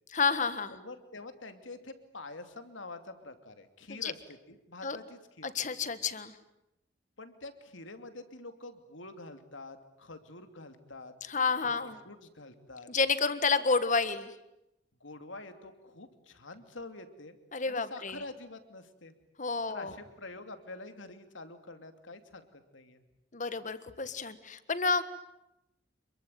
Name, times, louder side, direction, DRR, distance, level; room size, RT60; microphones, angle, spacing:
voice 1, 0.1-0.7 3.9-4.1 4.8-5.0 5.4-6.3 11.2-12.0 12.9-14.3 17.5-18.2 19.4-19.9 23.3-25.0, left 4 dB, 40° left, 13 dB, 1.6 m, -30 dB
voice 2, 0.7-5.5 6.0-6.1 7.2-11.1 11.6-12.9 15.0-17.4 17.7-19.1 19.7-23.0, left 2 dB, 85° left, 8 dB, 2.8 m, -47 dB
27.5 x 23.0 x 9.4 m, 0.89 s
head